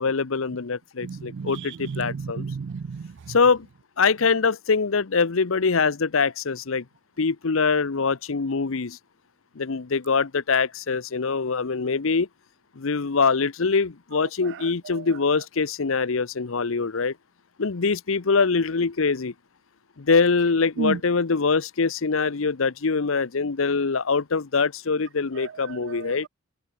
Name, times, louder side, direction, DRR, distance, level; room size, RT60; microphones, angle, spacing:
voice 1, 0.0-2.5 3.3-3.7 4.0-6.8 7.2-9.0 9.6-12.3 12.8-17.1 17.6-19.3 20.0-26.3, left 4 dB, 70° left, 0.8 m, -23 dB
voice 2, 1.0-3.4 14.4-15.1 20.8-21.0 25.3-26.3, right 5 dB, 55° right, 0.4 m, -33 dB
head